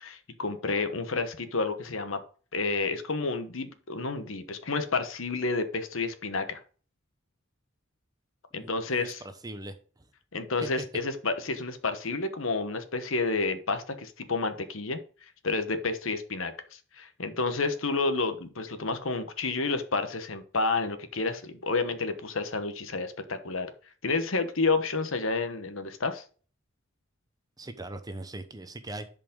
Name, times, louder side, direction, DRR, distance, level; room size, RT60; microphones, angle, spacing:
voice 1, 0.0-2.2 2.5-6.6 8.5-9.2 10.3-15.0 15.4-23.7 24.0-26.2, left 3 dB, 65° left, 1.2 m, -30 dB
voice 2, 8.5-9.8 10.6-10.8 27.6-29.1, right 2 dB, 20° right, 0.9 m, -40 dB
10.5 x 5.3 x 3.7 m
head